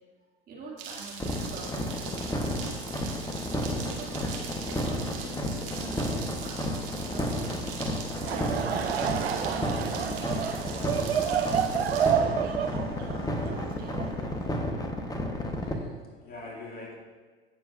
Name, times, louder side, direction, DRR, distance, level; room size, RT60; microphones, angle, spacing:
voice 1, 0.5-2.6 3.7-7.6 8.3-11.3 11.9-12.7 13.0-14.4, right 3 dB, 30° right, -4 dB, 2.5 m, -45 dB
sound 1, 0.8-12.1, right 5 dB, 60° right, 1.7 m, -42 dB
sound 2, 1.2-15.7, left 1 dB, 10° left, 1.2 m, -31 dB
Laughter / Crowd, 8.1-14.5, right 8 dB, 80° right, 0.6 m, -29 dB
voice 2, 15.7-17.0, left 2 dB, 30° left, -2 dB, 2.3 m, -44 dB
16.5 x 7.0 x 2.6 m, 1.4 s
figure-of-eight pair, 80°, 30 cm